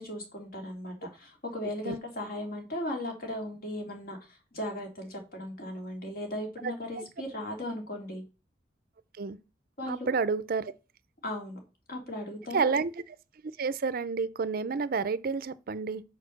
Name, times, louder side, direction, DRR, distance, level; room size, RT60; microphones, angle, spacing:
voice 1, 0.0-8.2 9.8-10.1 11.2-11.6 11.9-12.7, left 1 dB, 55° left, 2.7 m, -37 dB
voice 2, 9.9-10.7 12.5-13.2 13.6-16.0, right 5 dB, 55° right, 0.5 m, -30 dB
6.6 x 5.0 x 6.4 m
head